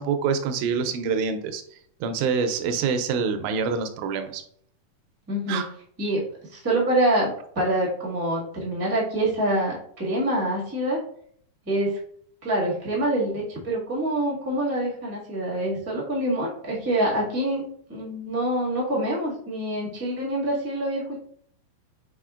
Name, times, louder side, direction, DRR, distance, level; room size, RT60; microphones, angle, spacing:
voice 1, 0.0-1.6 2.0-4.4 5.5-5.7, right 5 dB, 80° right, 7 dB, 1.8 m, -26 dB
voice 2, 5.3-5.6 6.0-6.2 6.5-11.0 11.6-12.0 12.4-17.6 17.9-21.2, right 1 dB, 30° right, -6 dB, 0.4 m, -26 dB
5.0 x 4.4 x 2.4 m, 0.62 s
omnidirectional pair, 3.7 m